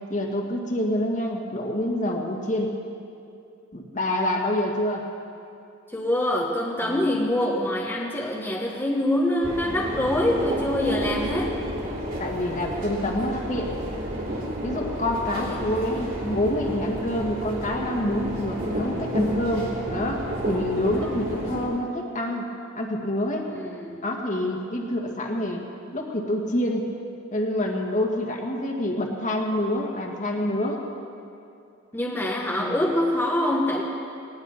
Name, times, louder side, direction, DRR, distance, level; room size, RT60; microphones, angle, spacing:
voice 1, 0.1-2.7 3.7-5.1 6.8-7.2 12.2-13.7 14.6-22.5 22.8-23.5 24.0-25.7 25.9-26.9 27.3-30.8 32.6-32.9, left 1 dB, 35° left, 1 dB, 1.8 m, -27 dB
voice 2, 5.9-11.5 15.5-15.8 20.9-21.2 23.5-24.0 31.9-33.8, left 1 dB, 10° left, -3 dB, 1.2 m, -25 dB
sound 1, 9.4-21.7, equal, 45° right, 3.4 m, -31 dB
19.5 x 17.5 x 4.2 m, 2.6 s
head